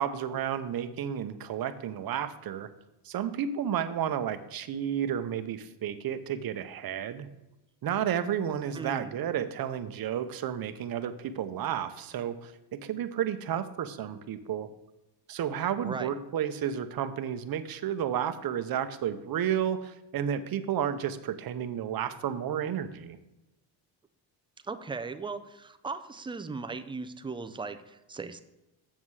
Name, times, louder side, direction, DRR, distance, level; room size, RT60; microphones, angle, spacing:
voice 1, 0.0-2.7 3.0-7.3 7.8-14.7 15.3-23.2, right 9 dB, 45° right, 10 dB, 0.8 m, -32 dB
voice 2, 8.7-9.1 15.8-16.2 24.6-28.4, right 4 dB, 10° right, 9 dB, 0.4 m, -38 dB
7.5 x 7.3 x 4.7 m, 0.98 s
cardioid pair, 125°, 48 cm